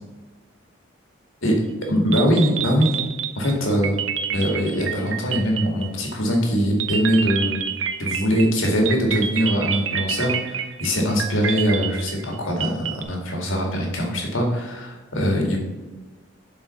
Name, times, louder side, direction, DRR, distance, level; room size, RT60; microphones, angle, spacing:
sound 1, 1.8-1.9 2.1-6.1 6.8-13.0, right 8 dB, 75° right, 0.7 m, -28 dB
voice 1, 1.9-3.0 3.4-3.9 4.3-7.6 8.0-15.6, equal, 80° left, 1 dB, 2.0 m, -22 dB
7.3 x 4.5 x 5.7 m, 1.2 s
head